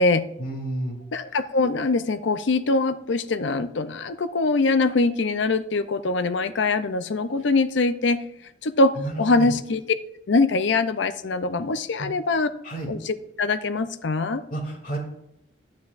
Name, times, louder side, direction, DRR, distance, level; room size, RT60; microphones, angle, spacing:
voice 1, 0.4-1.0 9.0-9.5 12.6-12.9 14.5-15.0, right 1 dB, 45° left, -2 dB, 2.9 m, -30 dB
voice 2, 1.1-8.2 8.6-9.8 10.3-12.5 12.9-14.4, left 3 dB, 70° left, 12 dB, 0.6 m, -23 dB
11.5 x 9.5 x 2.5 m, 0.82 s
head